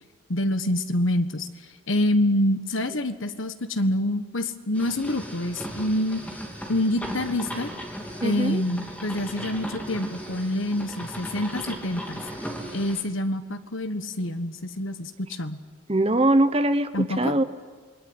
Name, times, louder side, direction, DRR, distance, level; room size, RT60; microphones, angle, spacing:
voice 1, 0.3-1.5 1.9-6.2 6.7-7.7 8.2-12.2 12.7-15.6 16.9-17.4, left 1 dB, 60° left, 10 dB, 1.4 m, -26 dB
sound 1, 4.7-13.0, equal, 5° left, 3.1 m, -37 dB
voice 2, 8.2-8.6 15.9-17.4, right 1 dB, 25° right, 10 dB, 1.0 m, -22 dB
28.0 x 21.5 x 9.7 m, 1.5 s
head